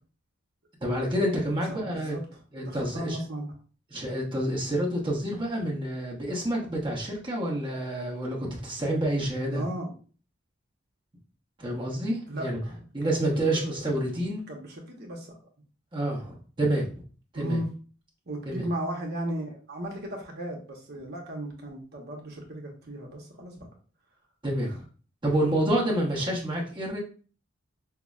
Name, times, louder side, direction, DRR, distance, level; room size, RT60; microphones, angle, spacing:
voice 1, 0.8-2.2 2.5-3.2 3.9-9.6 11.6-12.6 12.9-14.4 15.9-17.0 17.3-17.6 18.5-18.6 24.4-24.7 25.2-27.0, right 1 dB, 25° right, -3 dB, 0.9 m, -28 dB
voice 2, 1.8-3.5 9.5-9.9 12.3-14.0 14.5-15.3 17.3-17.7 18.3-23.7 24.6-24.8, right 1 dB, 55° right, 0 dB, 0.9 m, -36 dB
5.6 x 2.0 x 2.4 m, 0.40 s
head